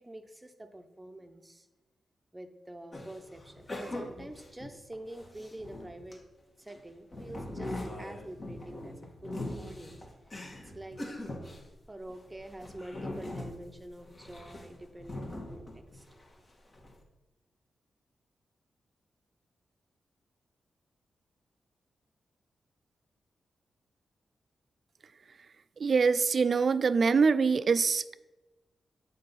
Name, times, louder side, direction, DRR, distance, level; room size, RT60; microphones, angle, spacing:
voice 1, 0.0-1.7 2.3-6.2 6.6-10.0 10.6-11.0 11.9-16.0, right 1 dB, 20° right, 7 dB, 0.7 m, -46 dB
sound 1, 2.9-6.2 6.7-16.3 16.6-16.9, left 1 dB, 45° left, 1.6 m, -41 dB
voice 2, 25.8-28.2, right 5 dB, 60° right, 15 dB, 0.3 m, -24 dB
6.6 x 4.1 x 5.6 m, 1.1 s
supercardioid pair, 50°, 0 cm